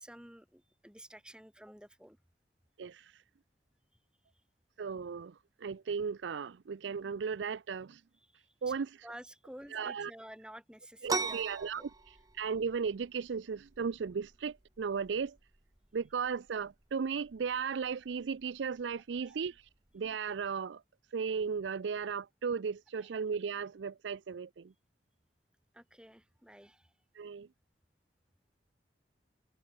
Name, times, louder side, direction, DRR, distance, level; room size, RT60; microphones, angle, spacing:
voice 1, 0.0-2.2 8.2-8.7 9.0-11.4 11.8-11.9 19.2-19.3 23.0-23.1 25.7-26.9, equal, 5° right, 5.5 m, -52 dB
voice 2, 2.8-3.2 4.8-8.0 8.6-9.0 9.7-10.1 11.0-11.9 12.3-15.4 15.9-19.6 19.9-20.8 21.1-24.7 27.1-27.5, right 6 dB, 80° right, 0.4 m, -36 dB
sound 1, 11.1-20.5, right 4 dB, 20° right, 0.9 m, -43 dB
head